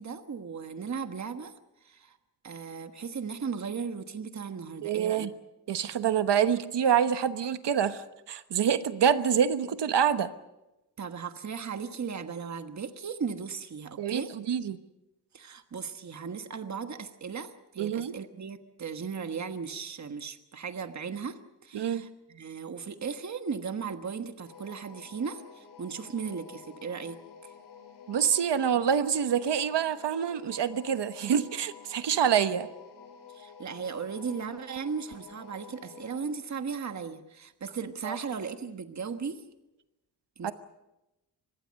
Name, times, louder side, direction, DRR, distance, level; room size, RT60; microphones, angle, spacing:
voice 1, 0.0-1.6 1.8-2.2 2.4-5.3 11.0-14.3 15.3-27.5 33.3-39.4 40.4-40.5, right 6 dB, 45° right, 8 dB, 1.4 m, -37 dB
voice 2, 4.8-5.3 5.7-10.3 14.0-14.8 17.8-18.1 21.7-22.0 28.1-32.7 38.0-38.2 40.4-40.5, right 8 dB, 90° right, 11 dB, 1.2 m, -26 dB
sound 1, 24.4-36.3, left 6 dB, 75° left, 4.7 m, -50 dB
25.0 x 20.5 x 6.5 m, 0.97 s
wide cardioid pair, 135°, 40 cm